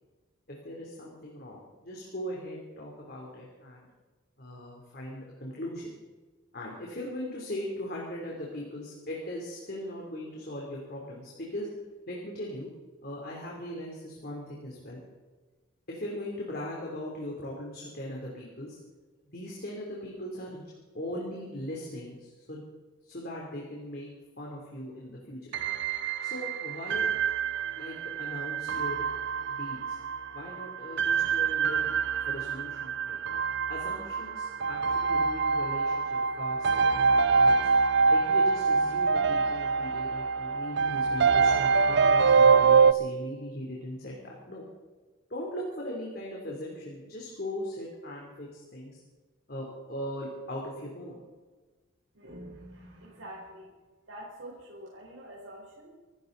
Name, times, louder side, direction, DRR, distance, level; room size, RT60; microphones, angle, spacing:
voice 1, 0.5-3.9 4.4-5.9 6.5-11.7 12.1-12.7 13.0-15.0 15.9-18.8 19.3-20.6 20.9-22.6 23.0-24.1 24.4-25.5 26.2-27.1 27.7-29.1 29.5-30.0 30.3-31.8 32.3-33.2 33.7-37.6 38.1-44.6 45.3-49.0 49.5-51.2, left 1 dB, 50° left, -3 dB, 3.3 m, -39 dB
sound 1, 25.5-42.9, right 5 dB, 55° right, 0.5 m, -25 dB
voice 2, 52.1-53.8 54.1-55.9, right 1 dB, 85° right, -5 dB, 4.6 m, -46 dB
25.5 x 14.0 x 4.0 m, 1.3 s
head